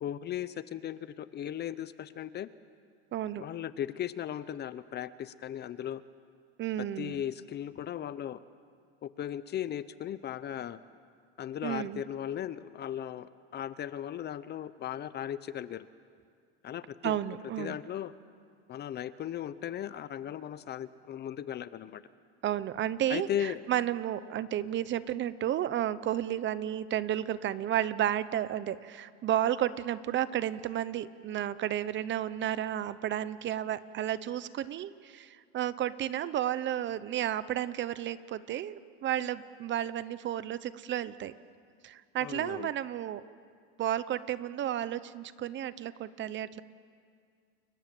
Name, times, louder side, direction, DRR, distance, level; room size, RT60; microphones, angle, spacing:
voice 1, 0.0-2.5 3.4-6.0 7.0-8.4 9.0-10.8 11.4-15.9 16.6-17.2 17.6-18.1 18.7-22.0 23.1-23.6 42.2-42.7, left 10 dB, 30° left, 15 dB, 0.7 m, -37 dB
voice 2, 3.1-3.4 6.6-7.2 11.6-12.0 17.0-17.8 22.4-41.3 41.8-43.2 43.8-46.6, right 11 dB, 35° right, 15 dB, 0.9 m, -32 dB
30.0 x 22.0 x 7.8 m, 2.2 s
supercardioid pair, 135°, 32 cm